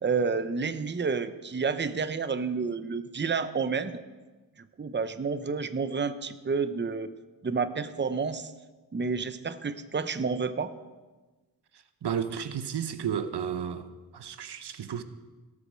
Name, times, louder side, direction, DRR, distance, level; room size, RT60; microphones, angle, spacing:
voice 1, 0.0-4.0 4.8-7.1 7.4-8.5 8.9-10.7, right 5 dB, 30° right, 0.7 m, -30 dB
voice 2, 12.0-13.9 14.1-15.0, right 8 dB, 85° right, 0.9 m, -32 dB
17.5 x 8.4 x 6.3 m
wide cardioid pair, 80°, 39 cm